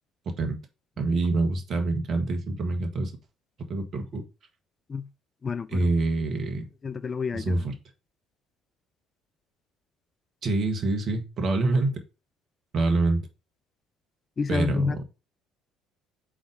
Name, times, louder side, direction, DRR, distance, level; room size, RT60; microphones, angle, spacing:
voice 1, 1.0-3.1 3.7-4.2 5.7-6.7 7.3-7.8 10.4-12.0 12.7-13.2 14.5-15.0, right 2 dB, 50° right, 1.5 m, -26 dB
voice 2, 5.4-5.9 6.8-7.5 14.4-15.0, left 5 dB, 35° left, 0.4 m, -29 dB
4.9 x 4.1 x 5.0 m
hypercardioid pair, 55°, 0 cm